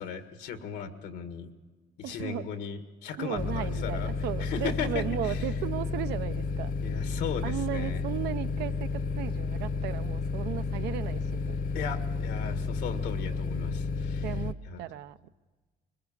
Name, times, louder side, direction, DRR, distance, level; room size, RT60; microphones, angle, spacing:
voice 1, 0.0-1.5 2.0-4.1 4.4-5.4 6.8-8.0 11.7-14.2 14.7-14.8, left 6 dB, 80° left, 8 dB, 1.8 m, -37 dB
voice 2, 2.0-2.5 3.2-6.7 7.4-11.6 13.3-13.7 14.2-15.3, right 12 dB, 80° right, 11 dB, 0.7 m, -36 dB
sound 1, 3.4-14.5, left 4 dB, 55° left, 1.1 m, -31 dB
21.5 x 21.0 x 7.3 m, 1.3 s
cardioid pair, 110°, 17 cm